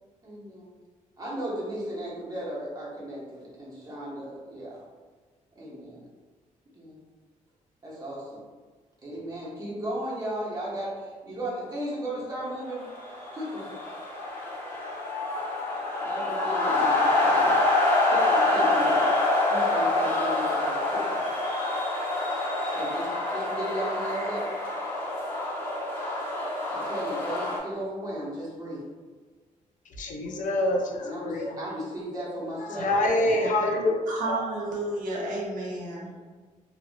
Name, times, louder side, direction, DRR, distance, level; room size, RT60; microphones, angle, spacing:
voice 1, 0.2-0.7 1.2-4.8 5.6-6.0 6.7-7.0 7.8-8.4 9.0-12.9 13.3-13.7 16.0-17.7 18.0-19.1 19.5-21.2 22.7-24.6 26.7-28.9 31.0-32.9 33.2-33.6, right 1 dB, 30° right, -6 dB, 1.1 m, -35 dB
sound 1, 12.8-27.6, left 2 dB, 20° left, 1.1 m, -26 dB
voice 2, 30.0-31.6 32.6-34.0, left 1 dB, 70° left, 1 dB, 0.5 m, -26 dB
voice 3, 34.1-36.1, right 2 dB, 75° right, -4 dB, 0.9 m, -31 dB
2.7 x 2.7 x 2.6 m, 1.4 s
cardioid pair, 115°, 14 cm